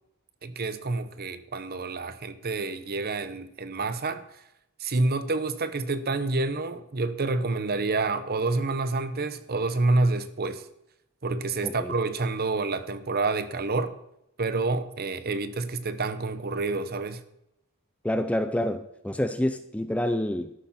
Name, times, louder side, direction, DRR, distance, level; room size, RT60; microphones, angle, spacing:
voice 1, 0.4-4.2 4.8-10.6 11.2-13.9 14.4-17.2, right 3 dB, 45° right, 0.9 m, -28 dB
voice 2, 11.6-11.9 18.0-20.5, left 1 dB, 5° left, 0.5 m, -28 dB
13.0 x 11.5 x 4.2 m
head